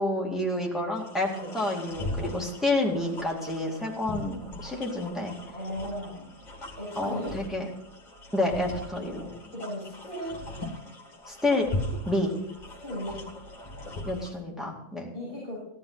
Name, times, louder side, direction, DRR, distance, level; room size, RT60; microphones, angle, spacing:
voice 1, 0.0-5.3 7.0-7.6 8.3-9.3 11.3-11.7 12.1-12.3 14.1-15.1, left 2 dB, ahead, -2 dB, 2.2 m, -29 dB
sound 1, 1.0-14.3, left 1 dB, 35° left, 1.9 m, -39 dB
voice 2, 1.2-1.5 5.5-6.3 6.8-7.4 9.5-10.4 12.8-13.2 15.1-15.6, equal, 50° right, -9 dB, 6.3 m, -36 dB
15.5 x 11.5 x 4.1 m, 0.76 s
omnidirectional pair, 1.3 m